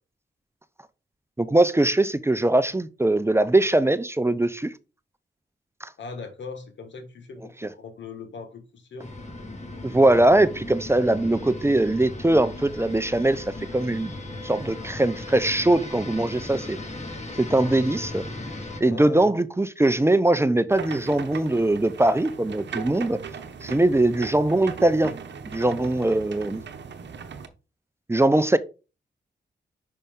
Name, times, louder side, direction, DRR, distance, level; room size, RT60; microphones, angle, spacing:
voice 1, 1.4-4.7 5.8-5.9 7.6-7.7 9.8-14.1 14.4-16.8 17.4-18.2 18.8-23.2 23.6-25.1 25.5-26.6 28.1-28.6, right 1 dB, 15° right, 0.5 m, -21 dB
voice 2, 6.0-9.1 18.8-19.3, left 4 dB, 85° left, 1.5 m, -39 dB
sound 1, 9.0-18.8, left 2 dB, 40° left, 1.8 m, -37 dB
sound 2, 20.7-27.5, right 6 dB, 75° right, 0.8 m, -38 dB
5.6 x 5.1 x 3.6 m
cardioid pair, 70°, 18 cm